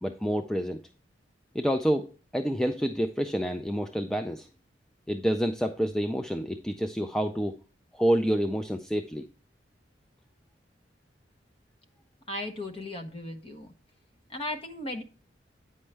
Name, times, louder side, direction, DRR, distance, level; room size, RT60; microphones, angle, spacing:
voice 1, 0.0-0.8 1.5-2.1 2.3-4.5 5.1-7.6 7.9-9.2, equal, 5° left, 6 dB, 0.4 m, -28 dB
voice 2, 12.3-13.7 14.3-15.0, left 1 dB, 30° left, 5 dB, 0.8 m, -36 dB
8.7 x 5.3 x 3.3 m, 0.35 s
head